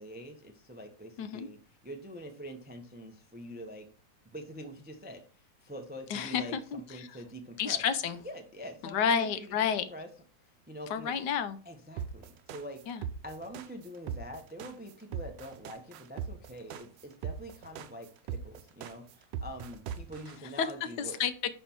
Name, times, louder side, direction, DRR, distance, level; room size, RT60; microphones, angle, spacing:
voice 1, 0.0-3.9 4.3-7.8 8.2-10.1 10.7-11.2 11.6-12.8 13.2-21.2, equal, 15° right, 5 dB, 0.3 m, -45 dB
voice 2, 6.1-7.1 7.6-8.2 8.9-9.8 10.9-11.6 12.9-13.0 20.6-20.7 21.0-21.5, left 7 dB, 75° left, 11 dB, 1.3 m, -30 dB
sound 1, 12.0-20.4, right 7 dB, 85° right, 1.3 m, -39 dB
5.8 x 5.5 x 4.4 m, 0.40 s
omnidirectional pair, 1.9 m